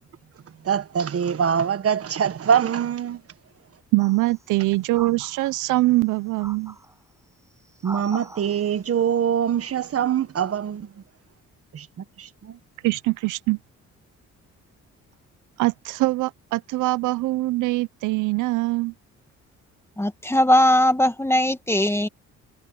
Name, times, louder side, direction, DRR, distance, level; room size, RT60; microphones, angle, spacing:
voice 1, 0.6-3.2 7.8-10.9 11.7-12.6, right 8 dB, 50° right, 1.4 m, -24 dB
voice 2, 3.9-6.7 12.8-13.6 15.6-18.9, right 20 dB, 85° right, 0.6 m, -23 dB
sound 1, 4.0-4.5 4.9-5.8 6.4-7.0 7.6-8.8, right 1 dB, 10° right, 7.1 m, -42 dB
voice 3, 20.0-22.1, left 1 dB, 10° left, 2.0 m, -19 dB
cardioid pair, 90°, 30 cm